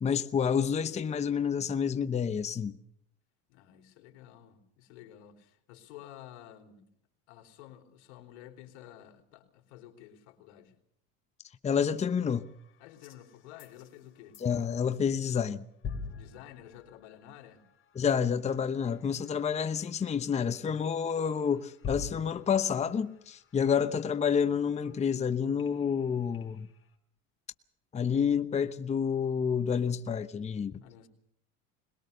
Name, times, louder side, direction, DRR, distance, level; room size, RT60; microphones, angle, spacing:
voice 1, 0.0-2.7 11.6-12.5 14.4-15.6 17.9-26.7 27.9-30.8, left 7 dB, 20° left, 0.9 m, -29 dB
voice 2, 3.5-6.9 7.3-10.7 12.8-14.4 16.2-17.6 23.7-23.8 30.8-31.1, left 11 dB, 85° left, 3.6 m, -51 dB
sound 1, 11.7-15.0 15.3-15.6 15.8-26.9, left 5 dB, 35° left, 4.3 m, -48 dB
22.0 x 21.0 x 6.7 m
supercardioid pair, 120°, 33 cm